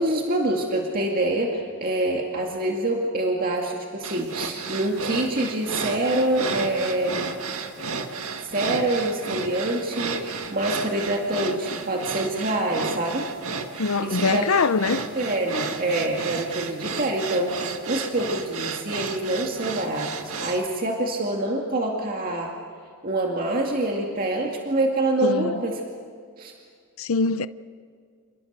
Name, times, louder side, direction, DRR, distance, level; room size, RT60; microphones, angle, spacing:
voice 1, 0.0-7.3 8.4-13.3 14.0-14.5 15.1-22.5 23.0-25.8 26.4-26.5, right 1 dB, 40° right, 2.3 m, -26 dB
sound 1, 4.0-20.6, right 4 dB, 75° right, 2.0 m, -32 dB
voice 2, 13.8-15.1 25.2-25.6 27.0-27.5, left 4 dB, 70° left, 0.6 m, -23 dB
29.5 x 28.5 x 6.8 m
head